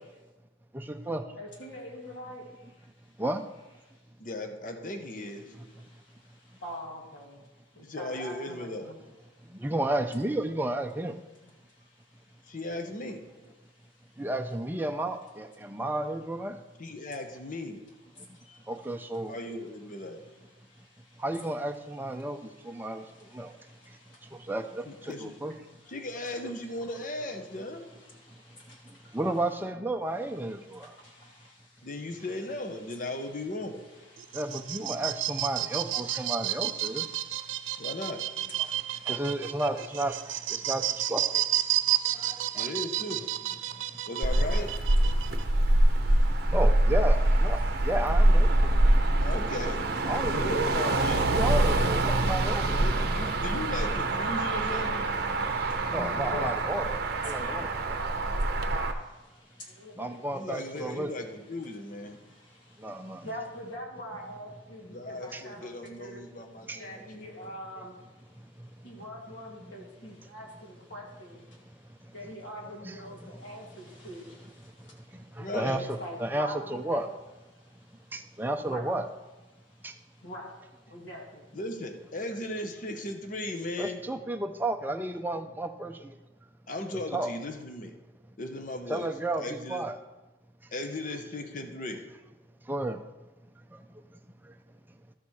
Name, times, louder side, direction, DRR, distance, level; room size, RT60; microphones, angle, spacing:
voice 1, 0.7-1.2 3.2-3.4 9.6-11.1 14.2-16.6 18.7-19.3 21.2-22.4 22.7-23.0 23.3-23.5 24.5-24.8 25.2-25.5 29.1-30.9 34.3-37.0 39.1-40.1 40.7-40.8 41.1-41.2 42.6-42.7 46.5-47.2 47.4-47.6 47.8-48.7 50.1-50.5 51.3-52.8 55.9-57.0 57.2-57.7 60.0-61.1 62.8-63.2 65.3-65.4 66.7-66.8 72.8-73.0 75.4-77.1 78.1-79.0 83.8-85.9 87.1-87.3 88.9-90.0 92.7-93.0, right 1 dB, 10° right, 5 dB, 0.5 m, -32 dB
voice 2, 1.3-3.1 3.8-4.0 4.7-4.9 5.2-9.0 9.3-9.7 11.4-12.6 12.9-14.2 15.6-15.8 18.1-18.8 19.2-19.4 19.9-21.5 22.2-24.8 25.2-25.4 25.6-26.4 26.7-29.2 30.3-33.5 33.7-39.8 40.2-44.2 44.5-46.6 47.6-47.9 48.5-50.6 51.1-56.6 57.2-60.3 60.7-77.0 77.5-78.8 79.5-81.6, equal, 65° left, -2 dB, 2.2 m, -47 dB
voice 3, 4.2-5.4 7.8-8.9 12.5-13.2 16.8-17.9 19.3-20.2 24.9-25.4 25.9-27.9 31.8-33.9 37.8-38.2 42.5-43.2 44.1-44.7 49.2-49.9 50.3-51.5 52.8-55.0 60.3-62.2 64.9-67.5 75.4-75.8 81.5-84.0 86.7-87.9 88.4-89.1 89.3-89.9 90.7-92.0, left 1 dB, 40° left, 6 dB, 0.9 m, -37 dB
sound 1, 34.2-45.4, right 13 dB, 70° right, 0.4 m, -31 dB
Motor vehicle (road), 44.2-58.9, right 1 dB, 50° right, 0.8 m, -25 dB
12.5 x 4.3 x 6.3 m, 1.1 s
head